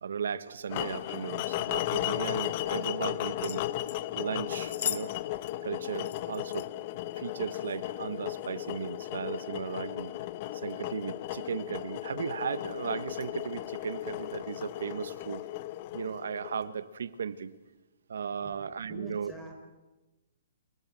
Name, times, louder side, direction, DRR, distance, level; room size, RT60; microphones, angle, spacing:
voice 1, 0.0-3.7 4.1-5.1 5.6-6.7 7.2-10.1 10.5-15.4 15.9-17.5 18.1-19.3, right 7 dB, 80° right, 15 dB, 1.4 m, -36 dB
sound 1, 0.7-16.8, left 15 dB, 35° left, 1.0 m, -35 dB
sound 2, 3.4-4.0 4.6-5.1 5.3-5.4 6.1-6.7 7.5-7.8 8.3-8.5, left 10 dB, 50° left, 1.5 m, -37 dB
voice 2, 18.3-19.5, right 1 dB, 5° left, 1 dB, 4.6 m, -46 dB
28.5 x 19.5 x 7.7 m, 1.1 s
hypercardioid pair, 155°, 0 cm